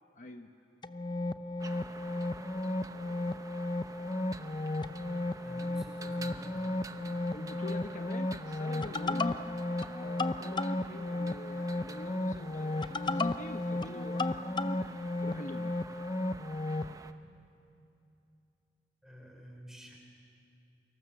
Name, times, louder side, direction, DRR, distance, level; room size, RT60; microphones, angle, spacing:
voice 1, 0.1-0.5 7.3-9.4 10.0-14.8 15.2-15.7, left 2 dB, 45° left, 5 dB, 1.0 m, -45 dB
sound 1, 0.8-16.9, left 2 dB, 25° left, 0.7 m, -34 dB
sound 2, 1.6-17.1, right 3 dB, 20° right, 0.9 m, -50 dB
voice 2, 5.4-6.6 19.0-20.0, equal, 5° right, 0 dB, 5.3 m, -50 dB
30.0 x 24.5 x 7.7 m, 2.7 s
head